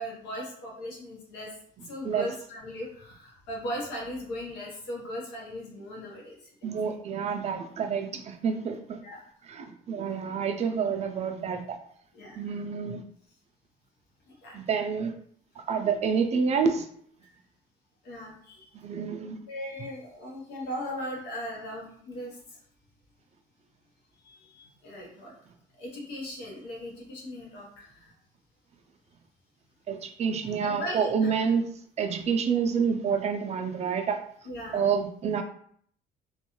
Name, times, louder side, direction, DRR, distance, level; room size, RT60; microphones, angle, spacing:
voice 1, 0.0-1.5 1.8-6.9 9.0-9.2 12.1-12.6 14.3-14.6 18.0-18.7 19.5-22.6 24.2-25.3 25.7-28.1 30.6-31.3 34.4-34.8, equal, 90° left, -2 dB, 0.9 m, -38 dB
voice 2, 6.6-9.0 9.4-11.8 12.3-13.0 14.5-15.1 15.7-16.9 18.7-19.4 29.9-31.7 32.0-34.2 34.7-35.4, right 6 dB, 40° right, 5 dB, 0.4 m, -28 dB
2.5 x 2.3 x 2.9 m, 0.62 s
cardioid pair, 110°, 17 cm